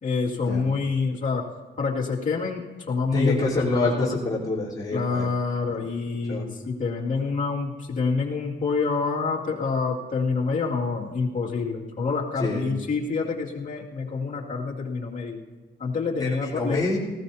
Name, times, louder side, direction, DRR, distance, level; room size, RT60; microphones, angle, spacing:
voice 1, 0.0-1.5 1.8-4.1 4.9-15.4 15.8-16.8, left 4 dB, 40° left, -3 dB, 2.4 m, -27 dB
voice 2, 3.1-5.3 5.7-5.9 6.3-6.4 12.4-12.9 16.2-17.0, left 2 dB, 20° left, -8 dB, 3.8 m, -26 dB
19.0 x 16.0 x 2.8 m, 1.2 s
cardioid pair, 90°, 20 cm